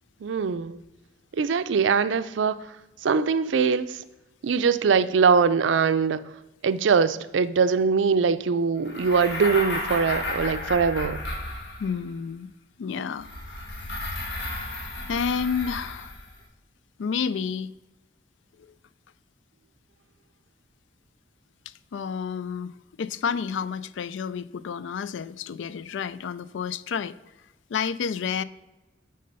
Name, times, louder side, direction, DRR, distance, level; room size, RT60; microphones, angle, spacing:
voice 1, 0.2-0.8 1.3-2.7 3.0-4.0 4.4-6.2 6.6-11.2, right 5 dB, 80° right, 0.4 m, -22 dB
sound 1, 8.8-12.1 13.2-16.3, left 2 dB, 65° left, 1.5 m, -33 dB
voice 2, 11.8-12.5 12.8-13.3 15.1-16.1 17.0-17.7 18.6-18.7 21.7-27.2 27.7-28.4, left 6 dB, 80° left, 0.4 m, -30 dB
9.3 x 3.8 x 5.4 m
head